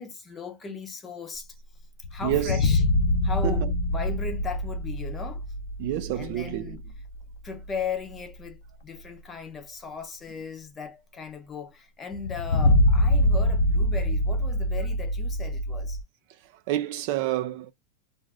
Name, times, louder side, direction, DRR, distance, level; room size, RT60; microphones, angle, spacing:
voice 1, 0.0-1.5 2.1-2.8 3.2-5.4 6.1-6.8 7.4-16.0, left 5 dB, 15° left, 0.6 m, -37 dB
sound 1, 2.0-6.7 7.0-7.1 12.1-16.0, left 1 dB, 80° left, 0.6 m, -24 dB
voice 2, 2.2-2.6 3.4-3.6 5.8-6.8 16.7-17.7, right 14 dB, 50° right, 0.4 m, -28 dB
2.5 x 2.4 x 3.2 m
supercardioid pair, 160°, 0 cm